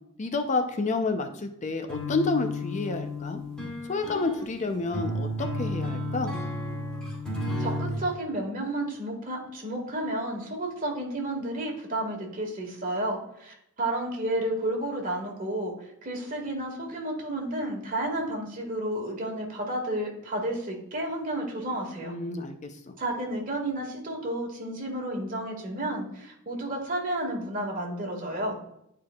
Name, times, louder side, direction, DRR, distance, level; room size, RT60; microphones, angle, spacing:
voice 1, 0.2-3.4 3.8-6.3 22.0-22.9, left 3 dB, 35° left, 6 dB, 0.5 m, -29 dB
sound 1, 1.9-8.0, left 1 dB, 5° left, 2.3 m, -32 dB
voice 2, 7.6-15.7 16.0-22.1 23.0-28.6, right 1 dB, 45° right, 0 dB, 1.8 m, -31 dB
10.5 x 4.7 x 2.3 m, 0.76 s
head